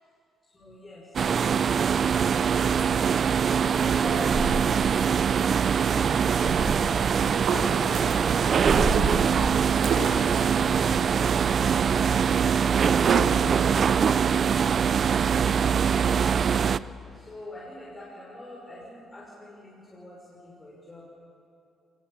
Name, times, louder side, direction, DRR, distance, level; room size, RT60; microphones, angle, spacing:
voice 1, 0.5-1.6 3.5-4.5 12.7-14.9 15.2-15.7 17.2-21.0, left 1 dB, 25° left, -5 dB, 5.7 m, -45 dB
sound 1, 1.1-16.8, right 7 dB, 50° right, 0.5 m, -23 dB
Breathing, 2.5-11.0, right 1 dB, 5° right, 6.2 m, -36 dB
sound 2, 5.5-13.7, right 5 dB, 75° right, 7.7 m, -34 dB
23.0 x 20.0 x 8.4 m, 2.6 s
cardioid pair, 90°, 0 cm